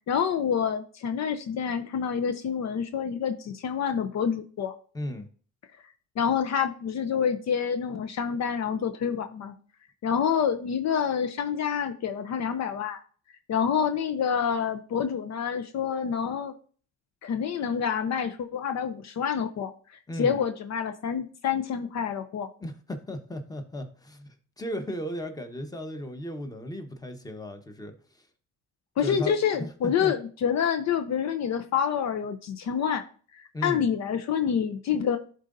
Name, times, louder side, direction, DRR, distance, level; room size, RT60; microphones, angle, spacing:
voice 1, 0.1-4.7 6.2-9.5 10.0-13.0 13.5-16.5 17.2-22.5 29.0-33.0 33.3-35.2, left 7 dB, 60° left, 8 dB, 0.7 m, -27 dB
voice 2, 4.9-5.3 20.1-20.4 22.6-28.3 29.0-30.1 33.5-33.8, equal, 10° left, 6 dB, 1.0 m, -36 dB
11.0 x 4.0 x 2.6 m, 0.42 s
cardioid pair, 90°, 30 cm